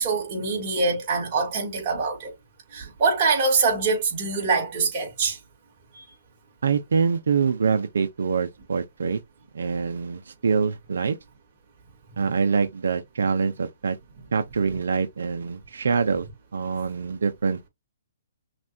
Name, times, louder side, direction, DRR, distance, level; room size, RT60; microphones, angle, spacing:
voice 1, 0.0-2.3 2.7-5.4 5.9-6.0, right 4 dB, 35° right, 2.9 m, -24 dB
voice 2, 6.6-9.2 9.5-11.2 12.2-14.0 14.3-16.3 16.5-17.7, right 5 dB, 90° right, 0.8 m, -25 dB
6.0 x 2.6 x 2.8 m
hypercardioid pair, 165°, 0 cm